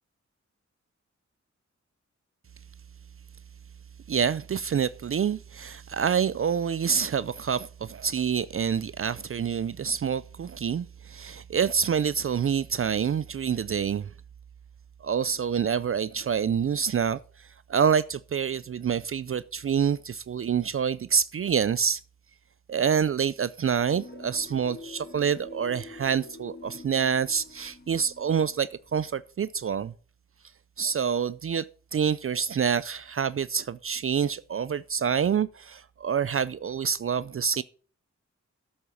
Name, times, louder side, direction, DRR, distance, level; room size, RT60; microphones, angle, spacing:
voice 1, 4.1-14.1 15.0-22.0 22.7-29.9 30.8-31.7 31.9-37.6, right 7 dB, 50° right, 0.4 m, -27 dB
sound 1, 23.9-29.1, left 3 dB, 35° left, 1.8 m, -47 dB
8.4 x 7.2 x 7.2 m
cardioid pair, 65°, 29 cm